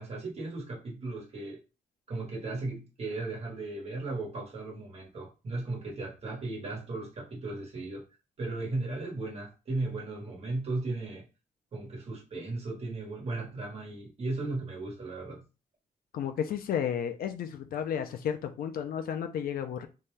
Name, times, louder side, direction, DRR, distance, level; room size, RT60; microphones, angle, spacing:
voice 1, 0.0-1.6 2.1-8.0 8.4-11.2 11.7-15.4, right 2 dB, 45° right, 1.3 m, -36 dB
voice 2, 16.1-19.9, left 8 dB, 80° left, 0.5 m, -32 dB
2.7 x 2.2 x 3.2 m
wide cardioid pair, 130°, 15 cm